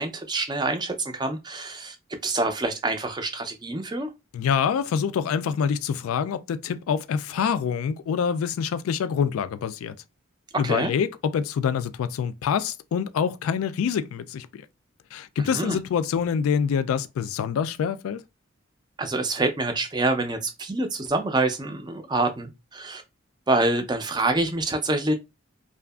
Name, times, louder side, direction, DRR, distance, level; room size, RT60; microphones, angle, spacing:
voice 1, 0.0-2.0 2.2-4.1 10.6-10.9 15.5-15.8 19.0-23.0 23.5-25.1, right 2 dB, 20° right, 0.4 m, -26 dB
voice 2, 4.3-9.9 10.6-14.6 15.1-18.2, left 7 dB, 90° left, 0.3 m, -26 dB
2.7 x 2.4 x 2.3 m
head